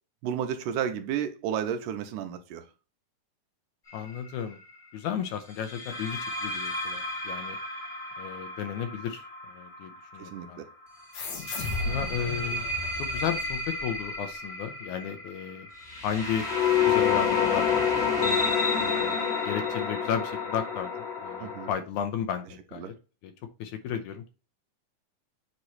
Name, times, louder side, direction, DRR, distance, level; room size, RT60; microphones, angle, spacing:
voice 1, 0.2-2.7 10.2-10.7 21.4-21.7 22.7-22.9, right 9 dB, 80° right, 2.2 m, -32 dB
voice 2, 3.9-4.6 4.9-7.6 8.2-10.6 11.8-12.6 13.0-15.7 16.0-16.5 16.8-17.8 18.2-18.4 18.8-22.9 23.2-23.3 23.6-24.3, left 8 dB, 80° left, 2.0 m, -34 dB
sound 1, 3.9-4.2 5.7-10.4 11.2-21.7, left 5 dB, 25° left, 1.4 m, -29 dB
sound 2, 11.1-14.2, left 3 dB, 60° left, 2.3 m, -35 dB
7.7 x 3.0 x 4.1 m
omnidirectional pair, 3.8 m